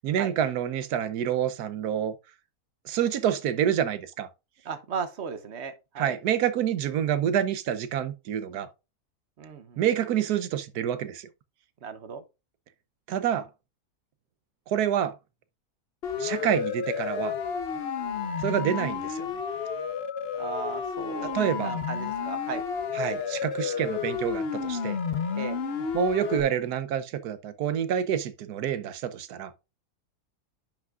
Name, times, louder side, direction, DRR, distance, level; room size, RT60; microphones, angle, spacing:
voice 1, 0.0-2.1 2.8-4.3 6.0-8.7 9.8-11.3 13.1-13.5 14.7-15.1 16.2-17.3 18.4-19.3 21.2-21.8 22.9-25.0 25.9-29.5, right 9 dB, 85° right, 1.3 m, -27 dB
voice 2, 4.6-6.2 9.4-9.8 11.8-12.2 20.4-22.7 25.4-25.6, right 5 dB, 50° right, 1.1 m, -36 dB
Siren, 16.0-26.4, left 6 dB, 50° left, 1.0 m, -31 dB
10.5 x 6.0 x 2.4 m
omnidirectional pair, 1.6 m